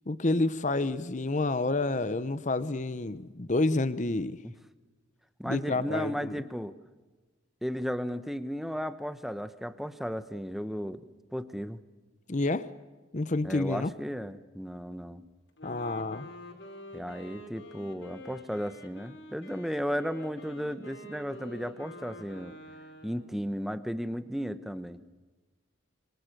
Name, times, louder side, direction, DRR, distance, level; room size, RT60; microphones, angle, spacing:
voice 1, 0.1-4.4 5.4-6.4 12.3-12.7 13.1-13.9 15.6-16.3, left 2 dB, 40° left, 14 dB, 0.9 m, -29 dB
voice 2, 5.4-6.8 7.6-11.8 13.4-15.2 16.9-22.6 23.0-25.0, equal, ahead, 11 dB, 1.0 m, -35 dB
Wind instrument woodwind instrument, 15.5-23.4, left 1 dB, 70° left, 5.5 m, -47 dB
26.5 x 25.0 x 6.7 m, 1.3 s
head